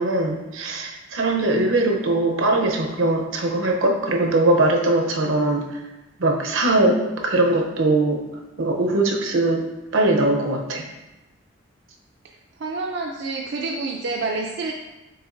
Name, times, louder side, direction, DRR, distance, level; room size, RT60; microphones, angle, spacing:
voice 1, 0.0-5.7 6.2-8.2 8.6-9.7 9.9-10.9, right 2 dB, 80° right, 2 dB, 0.7 m, -21 dB
voice 2, 12.6-14.7, right 3 dB, 60° right, 0 dB, 0.4 m, -28 dB
7.0 x 3.0 x 2.5 m, 1.0 s
head